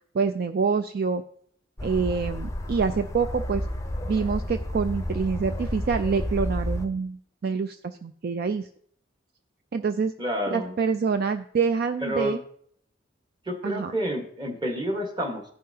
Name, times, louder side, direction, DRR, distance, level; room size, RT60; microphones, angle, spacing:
voice 1, 0.1-1.2 1.8-3.6 4.0-8.7 9.7-10.1 10.5-12.4 13.6-13.9, right 5 dB, 50° right, 9 dB, 0.4 m, -26 dB
sound 1, 1.8-6.8, left 1 dB, 15° left, 0.6 m, -31 dB
voice 2, 10.2-10.8 12.0-12.4 13.4-15.5, equal, 25° right, 3 dB, 1.3 m, -29 dB
15.0 x 5.6 x 2.8 m, 0.63 s
head